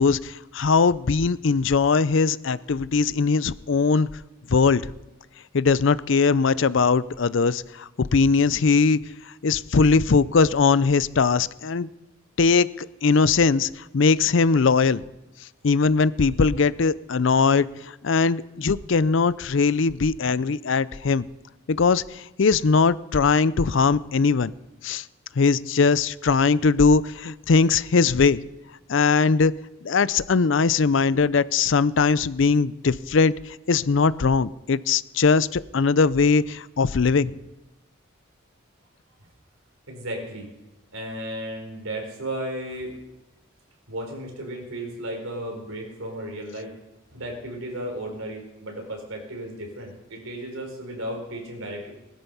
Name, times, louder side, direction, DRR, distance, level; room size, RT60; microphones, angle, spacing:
voice 1, 0.0-4.1 4.5-4.9 5.5-9.0 9.4-11.9 12.4-15.0 15.6-21.2 21.7-24.5 24.8-25.0 25.4-28.4 28.9-29.5 29.8-37.3, left 4 dB, 65° left, 18 dB, 0.5 m, -20 dB
voice 2, 39.9-40.5 40.9-43.0 43.9-46.7 47.1-51.9, right 1 dB, 90° right, 2 dB, 4.6 m, -34 dB
20.0 x 12.5 x 5.6 m, 0.99 s
head